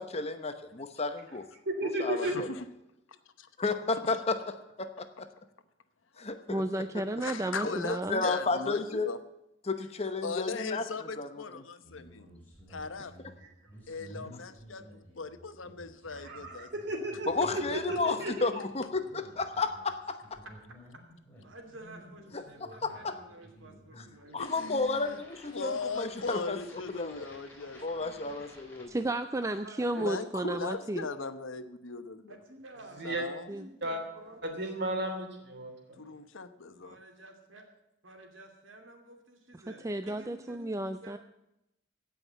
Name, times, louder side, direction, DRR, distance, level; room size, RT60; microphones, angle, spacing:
voice 1, 0.0-1.4 1.8-2.5 3.6-5.3 6.2-7.0 7.6-9.1 9.7-11.4 17.3-20.2 22.3-23.1 24.0-24.1 24.3-26.6 26.9-27.3 27.8-29.1, left 3 dB, 30° left, 8 dB, 1.0 m, -33 dB
voice 2, 1.6-2.4 16.1-18.5 33.0-33.2 33.8-34.0 34.4-36.0, right 1 dB, 55° right, 4 dB, 2.8 m, -34 dB
voice 3, 2.2-2.7 3.4-3.5 4.0-4.1 6.1-6.3 7.2-9.2 10.2-12.3 12.7-13.1 13.9-16.7 24.4-25.2 25.5-28.4 29.9-32.4 33.0-33.5 36.0-37.0, left 4 dB, 75° left, 10 dB, 1.0 m, -39 dB
voice 4, 6.5-8.2 28.9-31.0 33.5-33.6 39.8-41.2, right 1 dB, 15° right, 9 dB, 0.4 m, -33 dB
sound 1, 11.8-28.8, equal, 10° left, 4.4 m, -53 dB
voice 5, 21.4-24.7 29.6-30.0 32.3-33.0 33.5-34.4 36.8-37.7 38.0-41.2, right 2 dB, 75° right, 4 dB, 2.7 m, -51 dB
16.5 x 5.7 x 9.2 m, 0.88 s
head